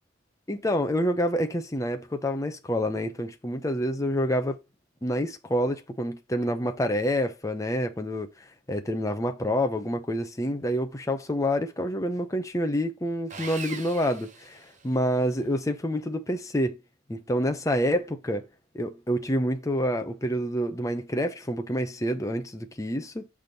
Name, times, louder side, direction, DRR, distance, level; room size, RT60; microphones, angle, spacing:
voice 1, 0.5-4.6 5.0-8.3 8.7-16.8 17.1-18.5 18.7-23.3, equal, 15° left, 0.7 m, -27 dB
Sawing, 13.3-15.2, right 5 dB, 40° right, 0.9 m, -41 dB
6.1 x 3.5 x 5.2 m
head